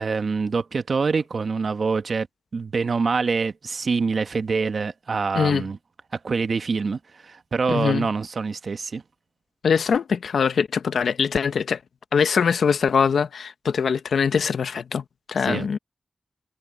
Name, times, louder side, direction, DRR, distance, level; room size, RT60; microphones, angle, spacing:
voice 1, 0.0-2.3 2.5-5.8 6.1-9.0 15.4-15.7, right 4 dB, 65° right, 1.4 m, -25 dB
voice 2, 5.3-5.7 7.7-8.1 9.6-11.8 12.1-15.8, left 6 dB, 85° left, 1.0 m, -22 dB
cardioid pair, 50°, 0 cm